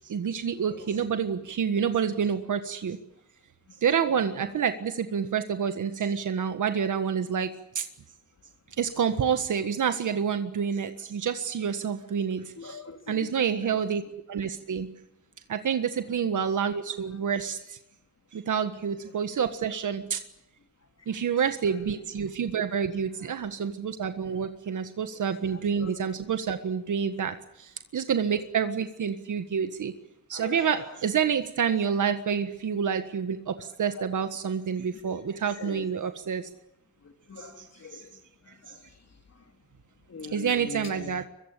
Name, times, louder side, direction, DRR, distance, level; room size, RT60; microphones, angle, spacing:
voice 1, 0.1-3.0 3.8-7.8 8.8-12.8 13.1-14.0 14.3-14.9 15.5-17.6 18.3-20.2 21.1-27.3 27.9-29.9 30.3-33.5 33.8-36.4 40.3-41.2, right 7 dB, 80° right, 1.6 m, -28 dB
voice 2, 0.6-1.0 3.7-4.6 8.7-8.8 12.6-13.3 13.7-14.0 16.1-16.4 19.0-19.1 20.8-21.2 21.7-22.1 23.2-23.5 24.7-24.8 25.1-25.2 25.5-26.2 28.3-28.5 30.3-31.0 33.9-34.1 34.9-35.2 35.5-35.9 37.0-39.6 40.1-41.2, left 4 dB, 60° left, 3.8 m, -45 dB
24.0 x 23.0 x 8.4 m
wide cardioid pair, 100°, 30 cm